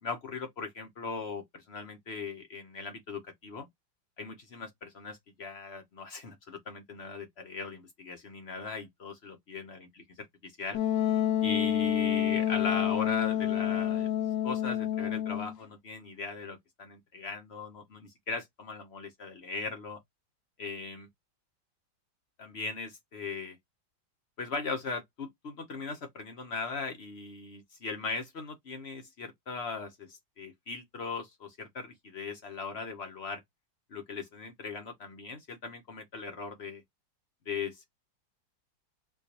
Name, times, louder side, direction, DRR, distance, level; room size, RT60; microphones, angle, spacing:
voice 1, 0.0-3.7 4.2-10.8 11.4-14.1 14.4-20.0 20.6-21.1 22.4-23.6 24.4-33.4 33.9-36.8 37.5-37.9, left 4 dB, 55° left, 0.7 m, -39 dB
Wind instrument woodwind instrument, 10.7-15.6, left 10 dB, 70° left, 1.1 m, -28 dB
4.4 x 2.3 x 2.8 m
omnidirectional pair, 2.0 m